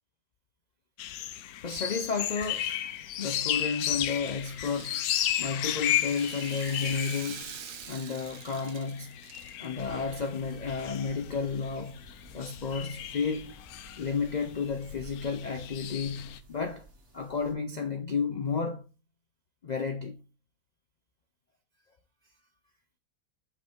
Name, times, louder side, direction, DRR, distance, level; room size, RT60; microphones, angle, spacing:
sound 1, 1.0-16.4, left 12 dB, 75° left, 1.0 m, -34 dB
voice 1, 1.6-2.7 3.2-5.1 5.4-7.5 7.9-9.2 9.6-12.0 12.3-13.5 14.0-16.9 17.1-18.8 19.6-20.2, left 5 dB, 90° left, 0.3 m, -32 dB
Rattle (instrument), 3.4-9.7, right 8 dB, 65° right, 1.1 m, -45 dB
sound 2, 9.8-17.5, right 2 dB, 45° right, 1.8 m, -54 dB
6.3 x 5.3 x 3.5 m
omnidirectional pair, 1.7 m